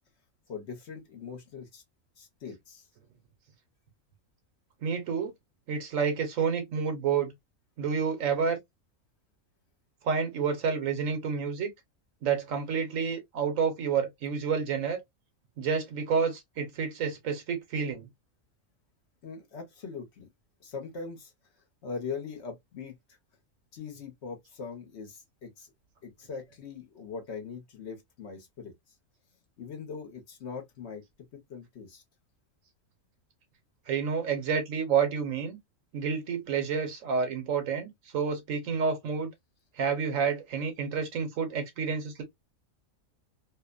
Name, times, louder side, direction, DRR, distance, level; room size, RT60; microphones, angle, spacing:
voice 1, 0.5-1.8 2.2-2.8 19.2-20.3 20.6-21.3 21.8-23.0 23.7-25.7 26.0-28.7 29.6-31.0 31.3-32.0, left 5 dB, 60° left, 1.0 m, -41 dB
voice 2, 4.8-5.3 5.7-7.3 7.8-8.6 10.0-11.7 12.2-15.0 15.6-18.1 33.9-35.6 35.9-39.3 39.8-42.2, right 6 dB, 75° right, 1.2 m, -29 dB
2.8 x 2.1 x 2.3 m
omnidirectional pair, 1.4 m